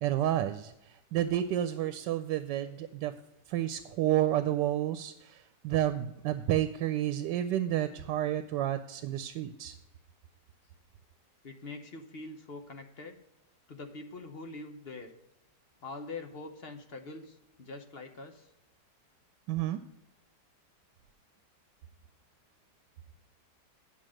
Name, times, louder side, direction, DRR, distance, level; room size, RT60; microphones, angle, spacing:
voice 1, 0.0-3.1 3.5-9.7 19.5-19.8, right 12 dB, 90° right, 10 dB, 1.2 m, -30 dB
voice 2, 11.4-13.2 13.7-15.1 15.8-18.5, left 3 dB, 45° left, 5 dB, 0.9 m, -44 dB
9.3 x 6.0 x 6.3 m, 0.89 s
omnidirectional pair, 1.8 m